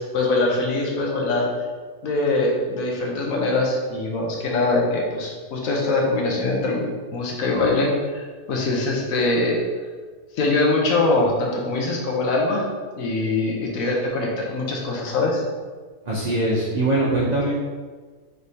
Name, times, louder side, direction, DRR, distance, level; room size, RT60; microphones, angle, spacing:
voice 1, 0.0-1.5 2.0-9.6 10.4-12.6 13.0-15.4, left 2 dB, 65° left, -1 dB, 1.2 m, -23 dB
voice 2, 16.0-17.5, right 2 dB, 55° right, -5 dB, 0.4 m, -22 dB
3.4 x 3.2 x 4.1 m, 1.5 s
omnidirectional pair, 1.6 m